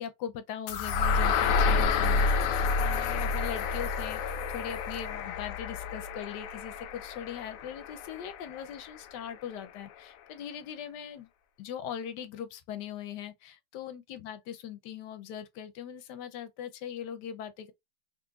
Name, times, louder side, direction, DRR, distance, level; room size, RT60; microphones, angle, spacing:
voice 1, 0.0-4.2 4.5-11.3 11.6-17.7, left 9 dB, 85° left, 1.2 m, -40 dB
sound 1, 0.7-8.6, left 4 dB, 70° left, 0.8 m, -29 dB
3.8 x 3.0 x 2.3 m
omnidirectional pair, 1.8 m